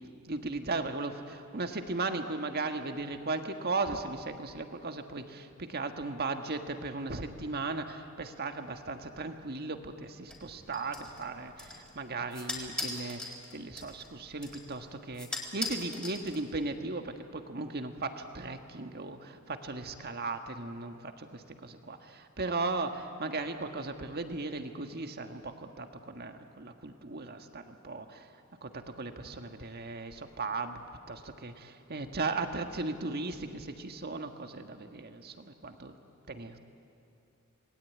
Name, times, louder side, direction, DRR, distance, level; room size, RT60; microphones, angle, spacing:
voice 1, 0.2-28.3 28.6-35.9 36.3-36.6, right 3 dB, 45° right, 6 dB, 1.7 m, -37 dB
sound 1, 10.3-16.8, left 2 dB, 5° left, 4.0 m, -41 dB
27.0 x 20.5 x 9.4 m, 2.6 s
head